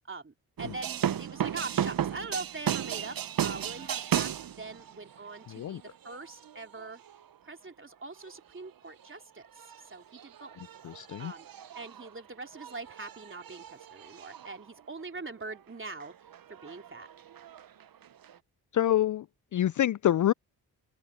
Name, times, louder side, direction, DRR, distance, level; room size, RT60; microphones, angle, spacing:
voice 1, 0.1-7.0 7.4-9.5 9.9-10.6 11.2-11.5 11.7-17.1, right 3 dB, 25° right, 3.3 m, -42 dB
sound 1, 0.6-7.4 8.2-8.7 9.0-9.2 9.5-15.6 15.9-18.4, right 9 dB, 50° right, 1.0 m, -36 dB
voice 2, 5.5-5.8 10.8-11.3 18.7-19.3 19.5-20.3, left 12 dB, 45° left, 0.5 m, -26 dB
open air
hypercardioid pair, 45°, 44 cm